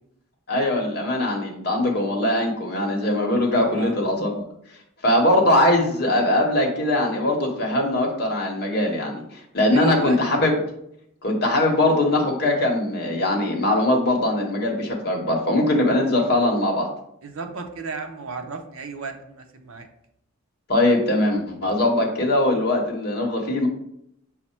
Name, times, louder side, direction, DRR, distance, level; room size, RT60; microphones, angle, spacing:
voice 1, 0.5-4.4 5.0-9.2 9.5-10.5 11.2-16.9 20.7-23.7, left 1 dB, 45° left, 0 dB, 0.9 m, -21 dB
voice 2, 3.6-4.0 9.7-10.5 17.2-19.9, right 4 dB, 65° right, 5 dB, 0.6 m, -33 dB
5.6 x 2.0 x 4.3 m, 0.74 s
head